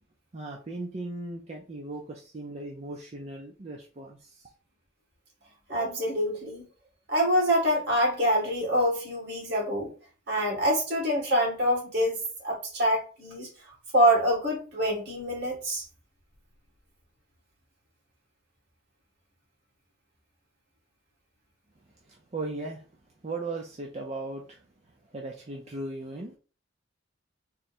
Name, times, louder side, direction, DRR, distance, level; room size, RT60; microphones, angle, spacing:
voice 1, 0.3-4.5 22.1-22.8 23.2-24.6 25.1-26.4, right 2 dB, 35° right, 0.5 m, -37 dB
voice 2, 5.7-6.6 7.1-9.9 10.3-15.8, equal, 60° right, 2.1 m, -26 dB
3.7 x 2.1 x 4.3 m
head